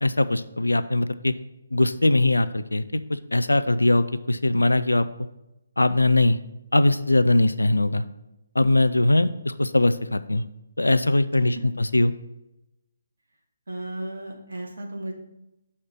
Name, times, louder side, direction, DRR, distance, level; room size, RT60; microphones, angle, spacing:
voice 1, 0.0-1.3 1.7-5.1 5.8-6.4 6.7-8.0 8.6-10.4 10.8-12.1, left 2 dB, 80° left, 13 dB, 0.4 m, -21 dB
voice 2, 13.7-15.1, right 1 dB, 60° right, 1 dB, 1.2 m, -34 dB
6.5 x 4.3 x 5.7 m, 0.93 s
figure-of-eight pair, 140°, 0 cm